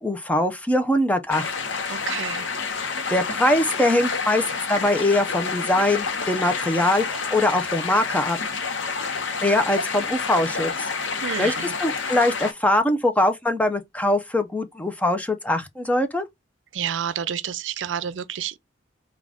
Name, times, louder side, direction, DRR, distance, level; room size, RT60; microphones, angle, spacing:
voice 1, 0.0-1.5 3.1-4.4 4.7-8.4 9.4-10.9 11.4-11.5 11.8-16.2, left 1 dB, 10° left, 0.5 m, -22 dB
sound 1, 1.3-12.5, left 5 dB, 75° left, 0.8 m, -28 dB
voice 2, 1.9-2.5 11.2-11.7 16.7-18.6, right 8 dB, 80° right, 0.5 m, -29 dB
3.7 x 2.3 x 3.5 m
head